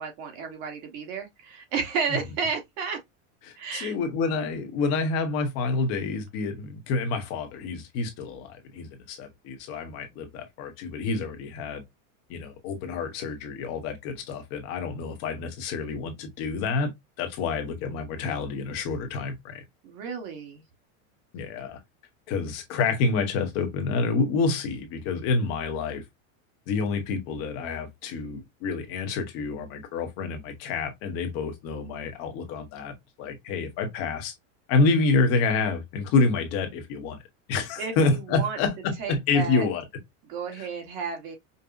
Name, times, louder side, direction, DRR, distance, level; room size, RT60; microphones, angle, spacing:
voice 1, 0.0-3.0 3.6-3.9 19.8-20.6 37.8-38.6 39.0-39.7 40.3-41.3, right 5 dB, 45° right, 1.2 m, -32 dB
voice 2, 3.4-11.8 12.3-16.9 17.2-19.6 21.3-21.8 22.3-26.0 26.7-34.3 34.7-37.2 37.5-39.8 40.6-40.7, left 4 dB, 35° left, 1.0 m, -28 dB
5.4 x 2.1 x 2.5 m
supercardioid pair, 165°, 41 cm